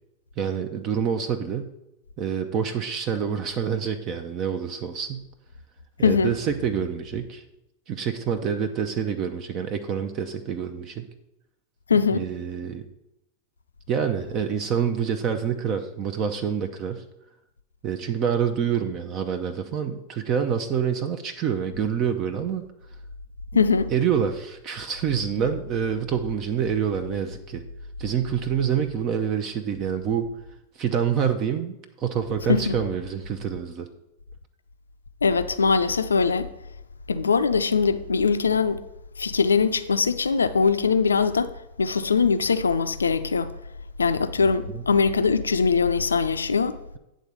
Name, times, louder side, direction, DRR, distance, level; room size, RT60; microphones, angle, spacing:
voice 1, 0.4-1.7 2.2-5.3 6.0-7.4 7.9-11.1 11.9-12.9 13.9-17.0 17.8-22.6 23.9-27.6 28.0-30.3 30.8-33.9 44.4-44.8, right 8 dB, 35° right, 0.6 m, -27 dB
voice 2, 11.9-12.2 23.5-23.9 32.5-32.8 35.2-36.5 37.1-38.8 39.2-41.5 41.8-43.5 44.0-46.8, left 5 dB, 75° left, 0.4 m, -21 dB
9.3 x 3.8 x 6.8 m
figure-of-eight pair, 90°, 0 cm